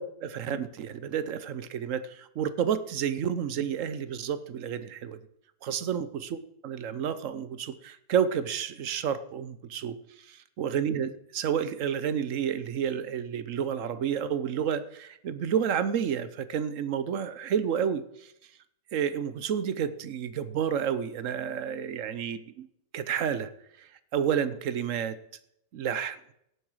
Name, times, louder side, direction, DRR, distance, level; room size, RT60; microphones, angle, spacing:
voice 1, 0.0-5.2 5.6-10.0 10.6-18.3 18.9-22.7 22.9-23.5 23.8-25.2 25.7-26.2, right 8 dB, 60° right, 14 dB, 1.0 m, -30 dB
17.5 x 7.9 x 4.8 m, 0.74 s
omnidirectional pair, 1.8 m